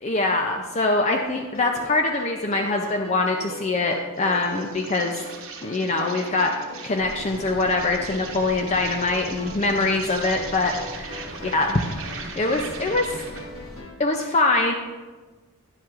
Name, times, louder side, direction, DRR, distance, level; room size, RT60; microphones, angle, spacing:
voice 1, 0.0-5.2 5.6-6.5 6.8-11.7 12.4-13.2 14.0-14.7, left 2 dB, 30° left, 3 dB, 0.5 m, -23 dB
sound 1, 1.2-14.1, left 2 dB, 65° left, 1.0 m, -41 dB
Insect, 4.1-13.5, right 5 dB, 70° right, 1.0 m, -40 dB
sound 2, 7.0-13.8, right 1 dB, ahead, 1.3 m, -42 dB
10.5 x 7.4 x 2.5 m, 1.3 s
head